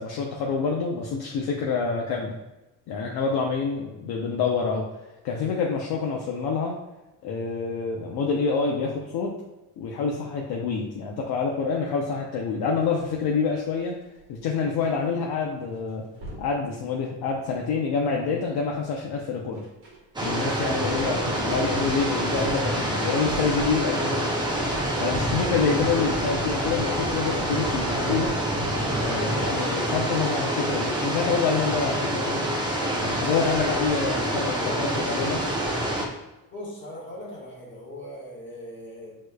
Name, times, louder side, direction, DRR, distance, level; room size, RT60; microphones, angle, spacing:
voice 1, 0.0-2.4 2.9-4.8 5.2-6.7 7.2-9.3 9.8-13.9 14.3-16.0 16.4-19.6 20.2-24.3 25.0-28.4 29.0-32.5 33.0-35.4, left 5 dB, 55° left, -1 dB, 0.6 m, -27 dB
sound 1, 12.7-14.9 15.2-15.4 15.7-16.5 17.1-17.7 18.0-23.9 24.3-29.0 29.3-29.4, right 2 dB, 50° right, 1.4 m, -44 dB
sound 2, 20.2-36.1, right 1 dB, 10° right, 0.4 m, -27 dB
voice 2, 36.5-39.2, left 1 dB, 25° left, -6 dB, 1.5 m, -39 dB
6.4 x 3.1 x 2.2 m, 1.0 s
cardioid pair, 170°, 45 cm